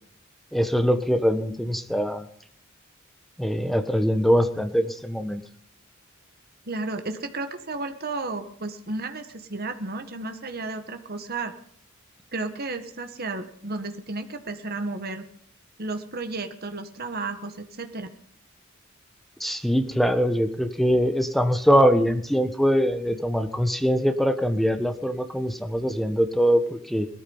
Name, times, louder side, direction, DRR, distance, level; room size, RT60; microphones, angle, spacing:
voice 1, 0.5-2.3 3.4-5.4 19.4-27.1, equal, ahead, 8 dB, 1.3 m, -23 dB
voice 2, 6.6-11.5 12.3-15.2 15.8-18.1, right 3 dB, 50° right, 7 dB, 1.7 m, -33 dB
19.0 x 13.5 x 5.6 m, 0.67 s
head